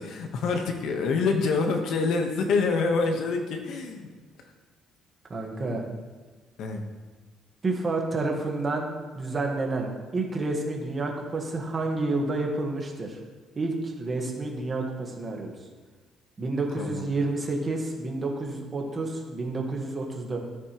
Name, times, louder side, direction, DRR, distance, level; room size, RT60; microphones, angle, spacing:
voice 1, 0.0-4.1 5.7-5.9 6.6-6.8 16.7-17.0, left 4 dB, 60° left, 4 dB, 1.2 m, -26 dB
voice 2, 5.3-5.8 7.6-13.2 13.5-15.5 16.4-20.4, right 2 dB, 20° right, 1 dB, 1.4 m, -29 dB
13.5 x 8.5 x 3.0 m, 1.4 s
cardioid pair, 175°, 0 cm